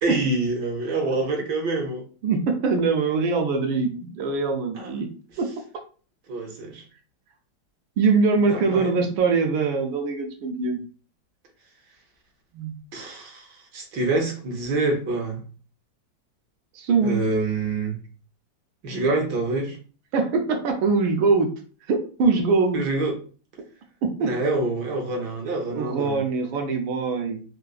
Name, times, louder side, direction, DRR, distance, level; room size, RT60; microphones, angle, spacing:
voice 1, 0.0-2.0 4.8-4.9 6.3-6.8 8.5-9.1 12.9-15.4 17.0-18.0 18.8-19.8 22.7-23.1 24.2-26.2, right 2 dB, 65° right, 1 dB, 1.2 m, -26 dB
voice 2, 2.2-5.1 5.4-5.5 8.0-10.8 12.5-12.8 16.7-17.2 20.1-21.5 21.9-22.8 24.0-24.3 25.7-27.4, right 4 dB, 85° right, 4 dB, 1.4 m, -23 dB
3.8 x 2.4 x 2.3 m, 0.39 s
omnidirectional pair, 2.2 m